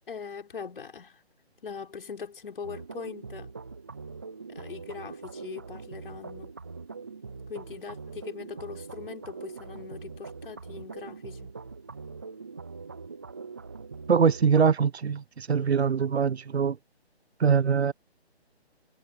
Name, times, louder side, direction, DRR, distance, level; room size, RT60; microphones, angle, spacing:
voice 1, 0.1-1.2 1.6-3.5 4.5-6.5 7.5-11.5, left 6 dB, 55° left, 6.4 m, -41 dB
sound 1, 2.6-14.7, right 4 dB, 15° right, 0.5 m, -42 dB
voice 2, 14.1-16.8 17.4-17.9, right 6 dB, 75° right, 0.9 m, -23 dB
figure-of-eight pair, 160°, 33 cm